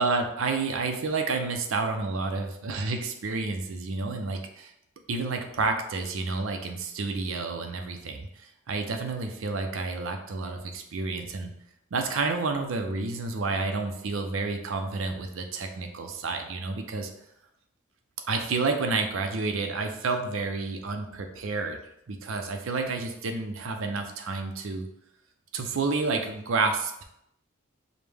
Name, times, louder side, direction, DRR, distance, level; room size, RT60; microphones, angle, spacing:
voice 1, 0.0-4.7 5.1-8.3 8.7-11.5 11.9-17.1 18.3-21.8 22.1-24.9 25.5-27.0, right 3 dB, 75° right, 5 dB, 0.5 m, -30 dB
5.0 x 2.1 x 3.4 m, 0.79 s
head